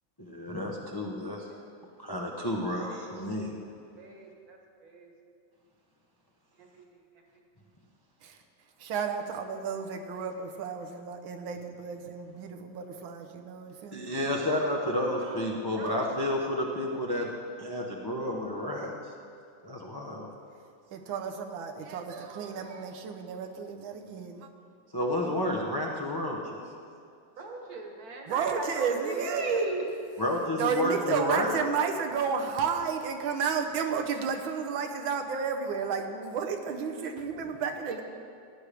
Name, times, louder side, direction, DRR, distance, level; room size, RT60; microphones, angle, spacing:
voice 1, 0.3-1.5 2.0-3.5 13.9-17.2 17.6-18.9 19.7-20.3 24.9-26.6 30.2-31.6, left 1 dB, 30° left, -1 dB, 0.4 m, -30 dB
voice 2, 1.2-1.7 4.0-5.1 6.6-7.0 7.3-7.4 15.2-15.4 15.7-16.0 27.4-29.8 37.9-38.0, right 3 dB, 50° right, 1 dB, 1.7 m, -38 dB
voice 3, 8.8-14.2 20.9-24.5 28.3-29.7 30.6-38.0, right 6 dB, 90° right, 5 dB, 1.6 m, -32 dB
15.0 x 9.8 x 3.4 m, 2.4 s
omnidirectional pair, 2.1 m